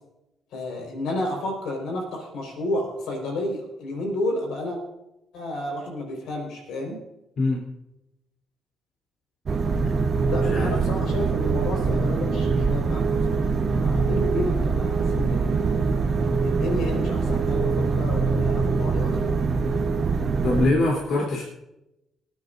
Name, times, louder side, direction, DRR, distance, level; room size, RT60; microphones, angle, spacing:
voice 1, 0.5-4.8 5.3-7.0 10.2-15.7 16.4-19.4, left 1 dB, 85° left, 1 dB, 4.8 m, -31 dB
sound 1, 9.5-20.7, right 4 dB, 45° right, 1.1 m, -23 dB
voice 2, 20.4-21.4, left 2 dB, 65° left, -3 dB, 3.5 m, -23 dB
26.0 x 9.5 x 2.7 m, 0.90 s
cardioid pair, 90°, 0 cm